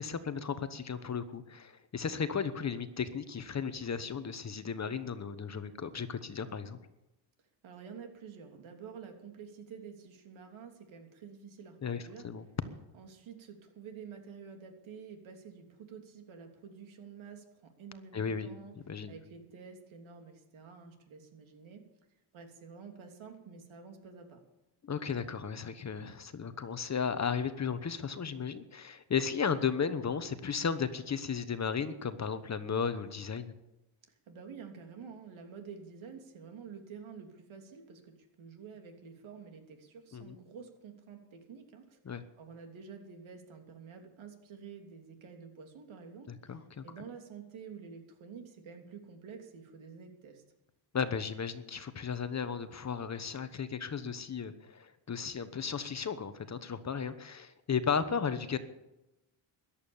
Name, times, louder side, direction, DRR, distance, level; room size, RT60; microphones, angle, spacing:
voice 1, 0.0-6.8 11.8-12.4 18.1-18.5 18.9-19.1 24.8-33.5 40.1-40.3 42.1-42.2 46.3-46.8 50.9-58.6, left 6 dB, 35° left, 11 dB, 1.1 m, -35 dB
voice 2, 7.6-12.3 12.9-18.8 19.1-21.9 22.3-24.4 34.1-50.4, right 6 dB, 70° right, 4 dB, 3.2 m, -49 dB
14.0 x 11.5 x 7.1 m, 0.93 s
cardioid pair, 110°, 50 cm